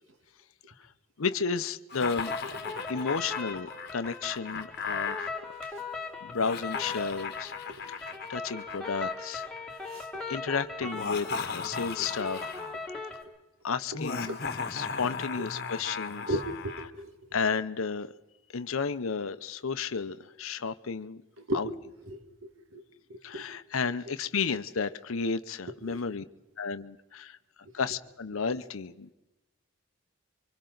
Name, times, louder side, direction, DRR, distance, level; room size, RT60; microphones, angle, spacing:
voice 1, 1.2-2.3 2.9-5.3 6.2-7.5 7.9-9.4 9.8-9.9 10.3-11.3 11.5-12.5 13.6-14.4 14.7-16.3 17.3-18.1 18.5-21.2 21.5-21.7 23.2-26.2 26.6-27.4 27.7-29.1, left 5 dB, 70° left, 11 dB, 0.7 m, -32 dB
Laughter, 1.9-5.3 6.3-9.6 10.8-12.8 13.9-16.9, left 5 dB, 45° left, 1.2 m, -37 dB
sound 1, 2.2-13.2, left 3 dB, 5° left, 2.0 m, -39 dB
voice 2, 2.4-2.8 5.6-5.7 7.7-7.8 9.9-10.3 12.0-12.1 14.3-14.5 16.3-17.1 21.4-21.7 22.1-22.8 23.1-23.5 25.7-26.0 27.7-27.8, right 1 dB, 65° right, 6 dB, 1.8 m, -37 dB
28.0 x 24.5 x 3.9 m, 1.0 s
head